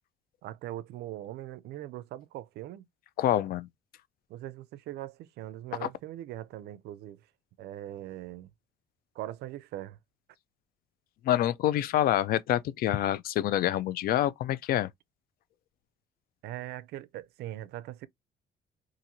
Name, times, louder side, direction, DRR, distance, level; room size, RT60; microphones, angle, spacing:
voice 1, 0.4-2.9 4.3-7.2 7.6-8.5 9.2-10.0 16.4-18.1, right 14 dB, 75° right, 0.4 m, -41 dB
voice 2, 3.2-3.7 5.8-5.9 11.2-14.9, left 12 dB, 60° left, 0.4 m, -27 dB
2.6 x 2.5 x 2.8 m
cardioid pair, 110°, 17 cm